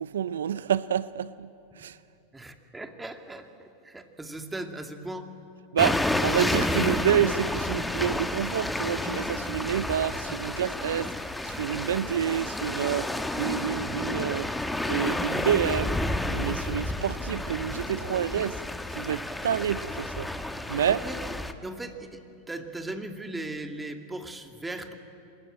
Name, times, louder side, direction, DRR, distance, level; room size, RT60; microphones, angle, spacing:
voice 1, 0.0-1.5 1.8-2.0 5.7-14.5 14.9-16.0 16.3-18.6 18.9-20.3 20.7-21.0, right 9 dB, 80° right, 17 dB, 0.5 m, -28 dB
voice 2, 2.3-5.3 20.9-21.2 21.6-22.2 22.5-24.9, right 2 dB, 10° right, 5 dB, 2.3 m, -38 dB
sound 1, 5.8-21.5, left 1 dB, 5° left, 1.3 m, -30 dB
26.5 x 19.5 x 8.9 m, 2.6 s
hypercardioid pair, 95°, 0 cm